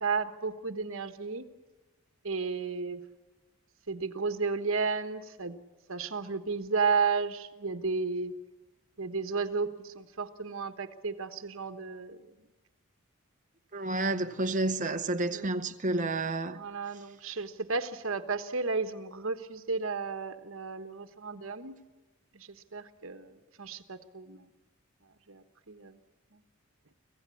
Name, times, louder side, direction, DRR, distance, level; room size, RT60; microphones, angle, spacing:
voice 1, 0.0-1.5 2.2-3.0 3.9-5.6 5.9-8.3 9.0-12.2 15.3-15.5 16.5-21.7 22.3-24.5 25.3-26.0, right 4 dB, 65° right, 1.2 m, -33 dB
voice 2, 13.7-16.6, right 2 dB, 35° right, 0.8 m, -30 dB
25.5 x 15.5 x 8.4 m
head